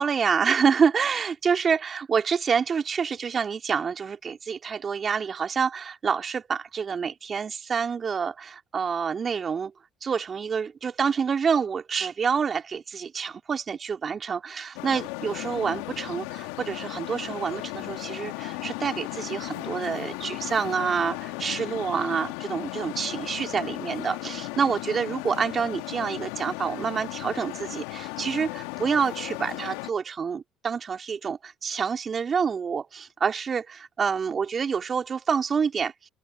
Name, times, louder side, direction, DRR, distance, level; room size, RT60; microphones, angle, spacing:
voice 1, 0.0-9.7 10.0-35.9, right 6 dB, 40° right, 3.4 m, -27 dB
Traffic noise roadway noise, 14.8-29.9, left 25 dB, 80° left, 2.3 m, -36 dB
open air
hypercardioid pair, 55°, 0 cm